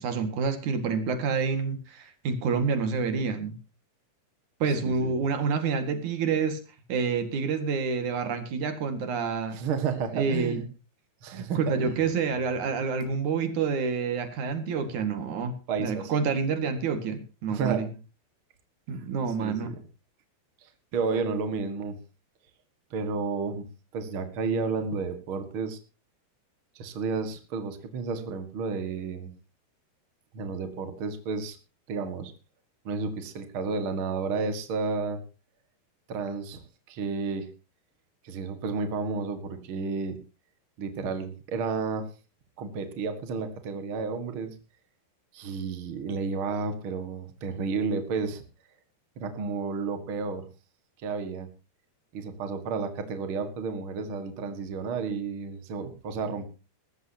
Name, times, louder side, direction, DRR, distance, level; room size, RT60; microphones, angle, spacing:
voice 1, 0.0-3.6 4.6-6.6 6.9-9.6 10.1-10.6 11.3-17.9 18.9-19.7, right 5 dB, 50° right, 8 dB, 2.6 m, -28 dB
voice 2, 4.8-5.1 9.5-10.6 11.2-12.0 15.7-16.1 17.5-17.8 18.9-19.1 19.4-19.8 20.9-21.9 22.9-23.6 23.9-25.8 26.7-29.3 30.3-31.6 31.9-32.3 32.8-35.2 36.1-37.4 38.2-40.1 40.8-42.1 42.6-44.5 45.3-48.4 49.2-50.4 51.0-51.5 52.1-56.4, right 4 dB, 80° right, 8 dB, 1.1 m, -31 dB
20.0 x 14.5 x 2.9 m, 0.31 s
omnidirectional pair, 5.5 m